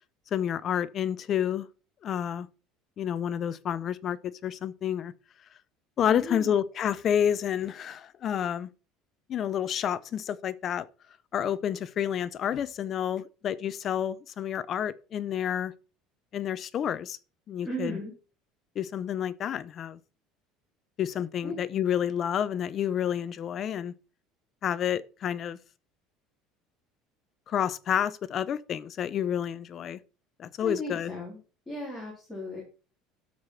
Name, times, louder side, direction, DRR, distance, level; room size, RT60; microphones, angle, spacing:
voice 1, 0.3-1.7 2.0-2.5 3.0-5.1 6.0-8.7 9.3-10.9 11.3-15.7 16.3-17.2 17.5-18.0 18.8-20.0 21.0-23.9 24.6-25.6 27.5-30.0 30.4-31.1, left 9 dB, 30° left, 0.5 m, -29 dB
voice 2, 6.1-6.5 17.6-18.1 21.4-21.5 30.6-31.4 31.7-32.6, equal, 10° left, 3.2 m, -36 dB
12.5 x 4.8 x 5.7 m
cardioid pair, 170°, 0 cm